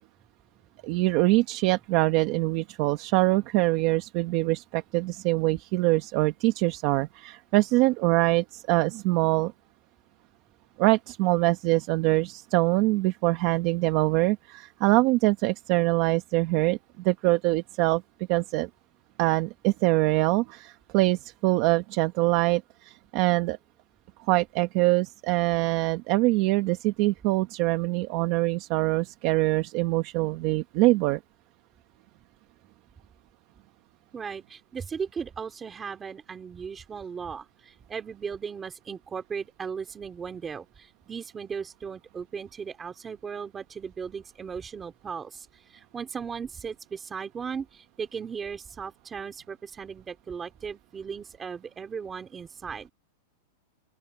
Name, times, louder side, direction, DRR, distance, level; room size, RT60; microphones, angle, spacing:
voice 1, 0.8-9.5 10.8-18.0 18.3-18.7 19.2-23.6 24.3-31.2, right 20 dB, 35° right, 1.2 m, -24 dB
voice 2, 34.1-52.9, right 6 dB, 10° right, 3.2 m, -37 dB
open air
supercardioid pair, 175°, 0 cm